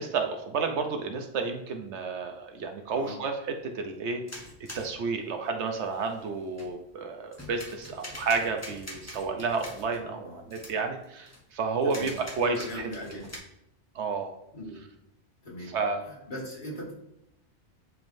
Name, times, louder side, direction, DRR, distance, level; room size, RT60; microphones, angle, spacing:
voice 1, 0.0-4.2 4.7-12.9 13.9-14.3 15.6-16.1, right 4 dB, 75° right, 4 dB, 1.0 m, -31 dB
sound 1, 4.3-6.9 7.3-10.1 10.5-10.8 11.0-11.4 11.8-13.4, left 1 dB, 15° left, 0.9 m, -45 dB
voice 2, 10.0-10.5 11.8-12.1 12.4-13.3 14.5-14.9 15.4-15.7 16.1-16.9, equal, 45° left, -5 dB, 1.9 m, -39 dB
10.5 x 3.5 x 2.6 m, 0.81 s
omnidirectional pair, 1.2 m